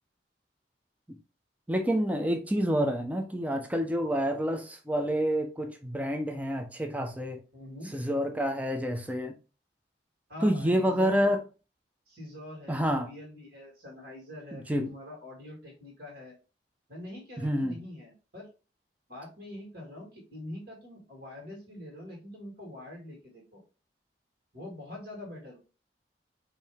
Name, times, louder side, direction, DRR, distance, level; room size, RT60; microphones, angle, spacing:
voice 1, 1.7-7.4 7.9-9.3 10.4-11.4 12.7-13.1 14.5-14.9 17.4-17.8, equal, 10° right, 0.6 m, -28 dB
voice 2, 7.5-7.9 10.3-11.4 12.1-16.4 16.9-18.5 19.1-23.6 24.5-25.6, left 1 dB, 50° right, 2.1 m, -44 dB
4.7 x 2.8 x 3.5 m
head